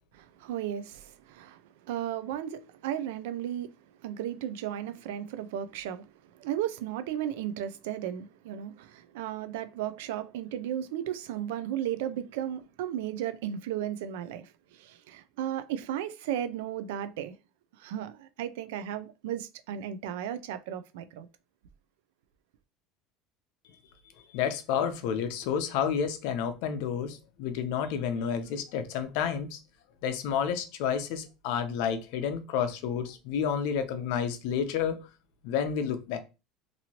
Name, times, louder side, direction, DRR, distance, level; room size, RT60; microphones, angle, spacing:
voice 1, 0.1-3.7 4.0-17.4 17.8-21.3, right 10 dB, 90° right, 0.3 m, -35 dB
voice 2, 24.3-29.6 30.0-35.1 35.4-36.2, left 7 dB, 70° left, 0.6 m, -30 dB
2.9 x 2.7 x 2.8 m
supercardioid pair, 135°, 0 cm